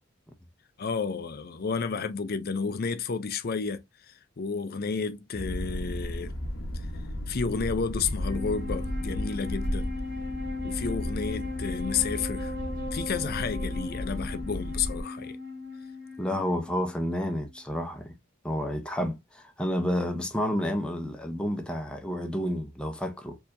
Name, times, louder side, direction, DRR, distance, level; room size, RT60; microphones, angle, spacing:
voice 1, 0.8-6.3 7.3-9.9 10.6-12.5 12.9-15.4 19.0-19.1, left 5 dB, 50° left, 0.5 m, -31 dB
sound 1, 5.3-15.0, left 1 dB, 80° left, 0.9 m, -34 dB
Wind instrument woodwind instrument, 8.1-17.6, left 3 dB, 50° right, 1.2 m, -38 dB
voice 2, 16.2-18.1 18.4-23.4, equal, 5° left, 0.6 m, -30 dB
4.5 x 2.9 x 2.5 m
head